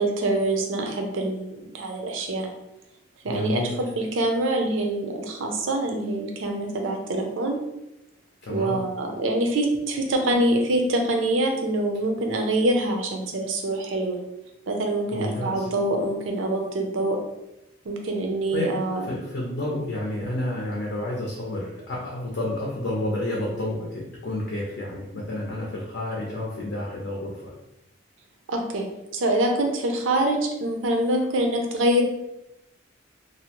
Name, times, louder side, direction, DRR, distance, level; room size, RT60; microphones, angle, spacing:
voice 1, 0.0-2.5 3.2-7.6 8.5-14.2 14.7-17.2 17.8-19.1 28.5-28.9 29.1-32.0, right 1 dB, 80° right, 3 dB, 0.5 m, -25 dB
voice 2, 3.3-3.8 8.4-8.8 15.1-15.7 18.5-18.7 19.0-27.5, left 1 dB, 60° left, -3 dB, 0.5 m, -30 dB
2.6 x 2.0 x 2.9 m, 0.89 s
head